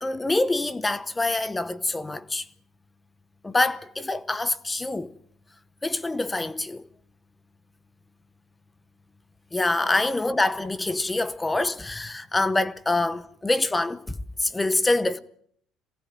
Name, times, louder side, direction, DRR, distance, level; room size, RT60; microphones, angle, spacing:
voice 1, 0.0-2.5 3.4-5.1 5.8-6.9 9.5-15.2, left 2 dB, 10° left, 0.9 m, -25 dB
24.0 x 17.5 x 9.2 m
cardioid pair, 145°, 0 cm